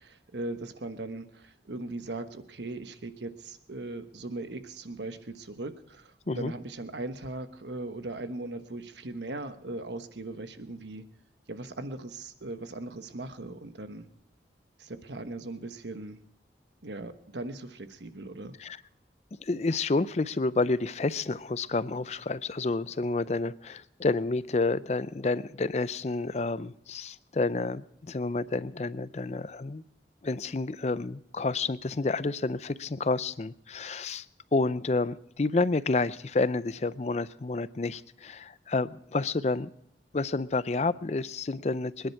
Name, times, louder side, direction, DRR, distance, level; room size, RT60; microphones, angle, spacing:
voice 1, 0.0-11.0 11.5-14.1 14.8-16.2 16.8-18.5, right 2 dB, 85° right, 9 dB, 1.2 m, -39 dB
voice 2, 19.4-29.8 30.2-34.3 34.5-39.7 40.1-42.1, left 3 dB, 40° left, 16 dB, 0.5 m, -29 dB
25.0 x 10.5 x 4.7 m, 0.76 s
head